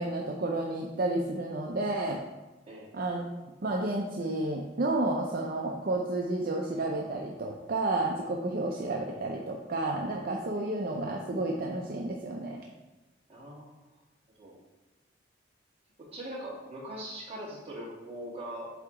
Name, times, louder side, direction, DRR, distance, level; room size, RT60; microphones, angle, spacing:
voice 1, 0.0-2.2 2.9-3.3 3.6-12.6, right 2 dB, 55° right, 0 dB, 0.6 m, -31 dB
voice 2, 13.3-13.8 14.4-14.5 16.0-18.7, right 1 dB, 35° right, -5 dB, 1.8 m, -41 dB
8.2 x 2.9 x 4.9 m, 1.1 s
head